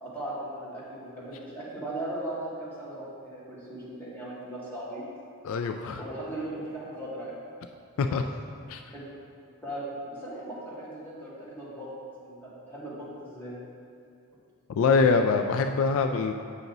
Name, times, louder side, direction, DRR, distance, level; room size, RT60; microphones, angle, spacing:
voice 1, 0.0-5.0 6.0-7.3 8.0-8.2 8.9-9.0 9.6-11.9 12.2-13.5, right 1 dB, 10° left, -9 dB, 2.0 m, -38 dB
voice 2, 5.4-6.0 8.0-8.3 8.7-8.8 14.8-16.3, left 4 dB, 65° left, 6 dB, 0.3 m, -24 dB
8.2 x 5.9 x 4.0 m, 2.3 s
head